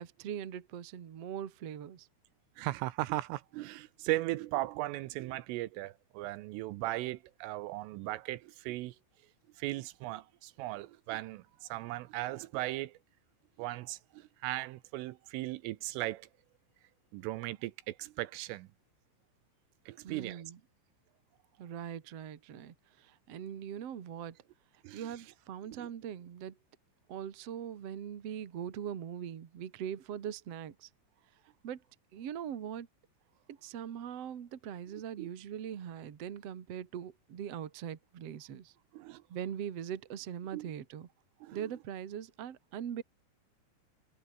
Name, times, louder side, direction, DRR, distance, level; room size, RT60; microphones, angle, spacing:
voice 1, 0.0-2.1 20.0-20.6 21.6-24.4 24.9-26.6 27.1-30.9 31.6-31.8 32.1-32.9 33.5-38.7 39.3-41.1 41.5-43.0, right 9 dB, 55° right, 1.7 m, -41 dB
voice 2, 2.6-9.0 9.6-13.0 13.6-16.3 17.1-18.7 19.9-20.4 24.8-25.1 25.8-25.9 35.2-35.3 38.9-39.2 40.5-40.7 41.4-41.6, right 17 dB, 80° right, 3.4 m, -37 dB
omnidirectional pair, 6.0 m